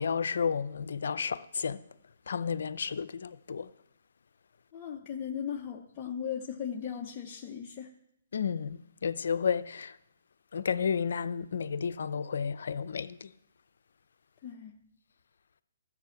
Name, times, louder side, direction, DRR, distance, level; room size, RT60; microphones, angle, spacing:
voice 1, 0.0-1.8 2.3-3.7 8.3-10.0 10.5-13.3, left 6 dB, 75° left, 0.6 m, -32 dB
voice 2, 4.7-7.9 14.4-14.8, left 8 dB, 30° left, 0.9 m, -37 dB
13.5 x 7.5 x 5.9 m
hypercardioid pair, 150°, 0 cm